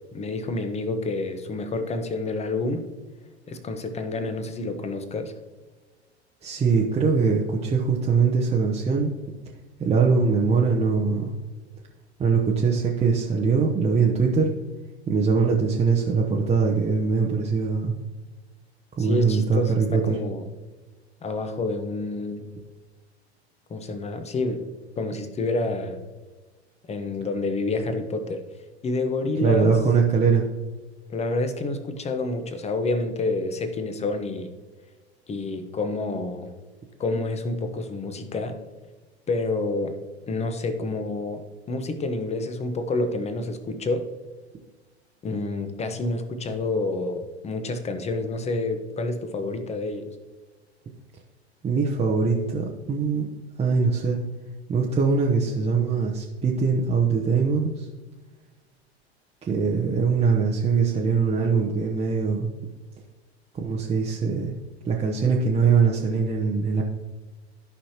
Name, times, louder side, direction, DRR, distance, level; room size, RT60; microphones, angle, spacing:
voice 1, 0.1-2.9 3.5-5.3 19.0-20.4 21.2-22.5 23.7-24.6 25.0-26.0 26.9-28.4 28.8-29.7 31.1-34.5 35.3-36.5 37.0-38.6 39.3-40.0 40.3-44.1 45.2-50.1, left 2 dB, 20° left, 8 dB, 1.0 m, -28 dB
voice 2, 6.4-9.1 9.8-11.3 12.2-14.5 15.1-17.9 19.0-20.1 29.4-30.4 51.6-53.3 53.6-54.2 54.7-57.9 59.4-62.5 63.5-64.5 64.8-66.8, right 5 dB, 20° right, -3 dB, 0.9 m, -22 dB
13.5 x 5.6 x 2.9 m, 1.3 s
figure-of-eight pair, 85°, 33 cm